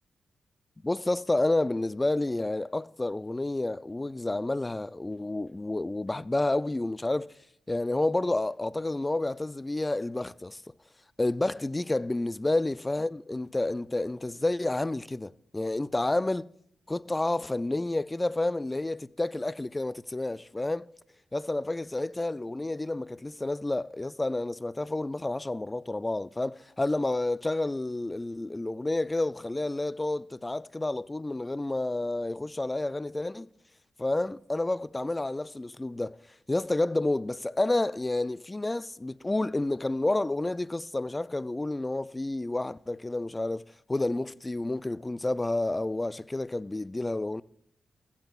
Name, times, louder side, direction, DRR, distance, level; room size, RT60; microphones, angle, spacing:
voice 1, 0.8-7.3 7.7-10.6 11.2-16.5 16.9-20.9 21.3-33.5 34.0-36.2 36.5-47.4, left 2 dB, 20° left, 0.3 m, -30 dB
15.0 x 14.5 x 2.4 m
cardioid pair, 65°, 0 cm